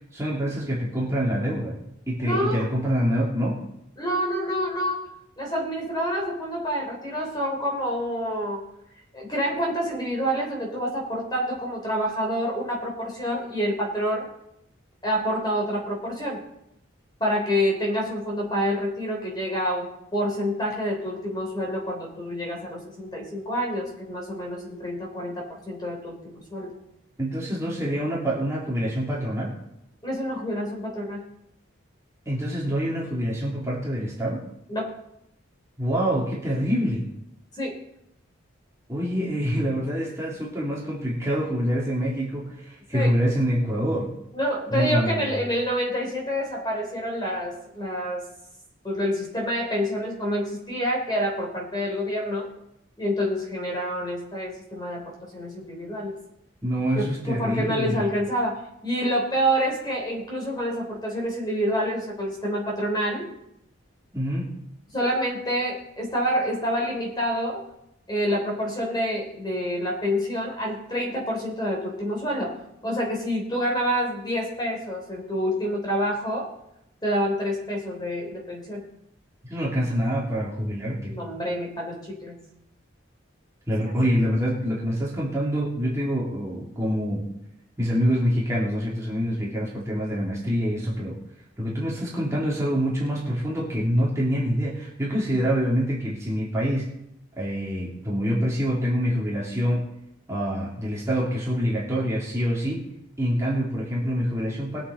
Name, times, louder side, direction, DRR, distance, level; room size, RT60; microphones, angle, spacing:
voice 1, 0.1-1.8 2.1-3.6 27.2-29.5 32.3-34.4 35.8-37.1 38.9-44.1 44.7-45.3 56.6-58.1 64.1-64.5 79.4-81.2 83.7-87.3 87.8-91.2 91.6-96.9 97.4-99.9 100.3-102.8 103.2-104.9, equal, 15° right, -5 dB, 2.9 m, -26 dB
voice 2, 2.2-2.6 4.0-5.0 5.4-8.6 9.1-14.3 15.0-16.4 17.2-26.8 30.0-31.2 34.7-34.9 37.5-37.8 42.9-43.2 44.3-48.2 48.8-52.5 53.0-56.1 56.9-63.3 64.9-67.6 68.1-72.6 72.8-76.5 77.0-78.8 81.0-82.4 83.8-83.9, equal, 20° left, -1 dB, 3.3 m, -27 dB
21.5 x 7.4 x 4.2 m, 0.80 s
head